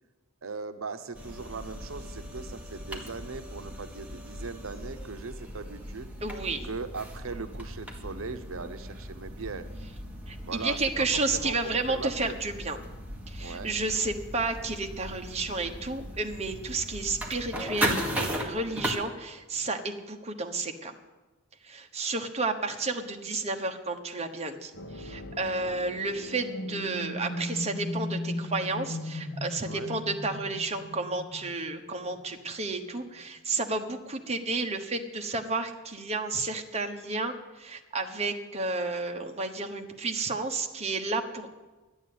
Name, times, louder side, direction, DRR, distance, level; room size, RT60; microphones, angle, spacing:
voice 1, 0.4-6.1 6.6-9.7 10.5-12.3 13.4-13.7 29.6-30.0, right 4 dB, 70° right, 10 dB, 0.8 m, -39 dB
sound 1, 1.1-18.9, equal, 5° right, 1.7 m, -37 dB
voice 2, 6.2-6.7 10.3-12.8 13.3-20.9 21.6-41.5, right 3 dB, 30° right, 4 dB, 1.2 m, -32 dB
sound 2, 24.7-32.5, left 1 dB, 55° left, 1.2 m, -37 dB
12.0 x 8.7 x 9.4 m, 1.2 s
head